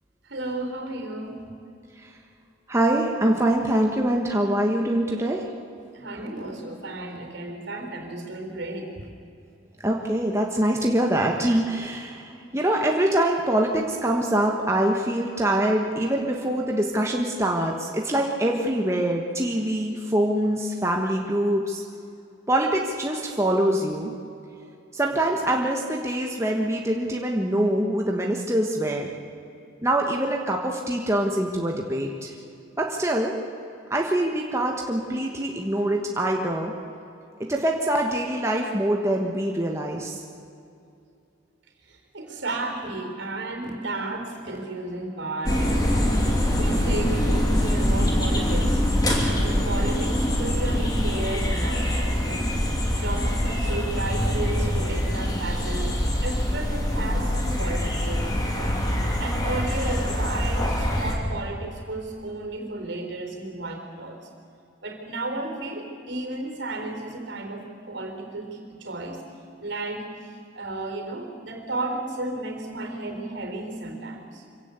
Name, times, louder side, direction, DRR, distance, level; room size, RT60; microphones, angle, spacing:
voice 1, 0.2-1.4 5.9-9.1 12.4-12.5 41.9-46.2 46.5-48.8 49.1-58.8 59.2-64.2 64.8-69.2 69.6-70.1 70.5-74.4, right 2 dB, 65° right, 4 dB, 3.8 m, -33 dB
voice 2, 2.7-5.5 9.8-21.8 22.5-24.1 24.9-29.1 29.8-32.3 32.8-33.4 33.9-36.7 37.4-40.2, right 1 dB, 15° right, 1 dB, 1.3 m, -24 dB
sound 1, 45.5-61.1, equal, 20° left, 2.7 m, -24 dB
25.0 x 16.5 x 8.2 m, 2.6 s
head